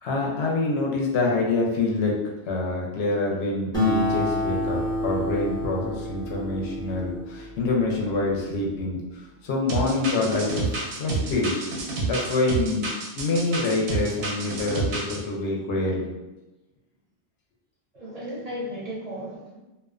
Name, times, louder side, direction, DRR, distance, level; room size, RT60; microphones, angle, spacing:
voice 1, 0.0-2.2 2.4-11.7 12.0-12.9 13.2-16.1, left 2 dB, 80° left, -2 dB, 0.9 m, -26 dB
Acoustic guitar, 3.7-8.6, left 1 dB, 5° left, 0.6 m, -29 dB
sound 1, 9.7-15.2, right 3 dB, 85° right, 0.9 m, -29 dB
voice 2, 10.9-11.3 17.9-19.6, equal, 45° right, -7 dB, 0.5 m, -36 dB
2.3 x 2.2 x 2.3 m, 1.0 s
omnidirectional pair, 1.1 m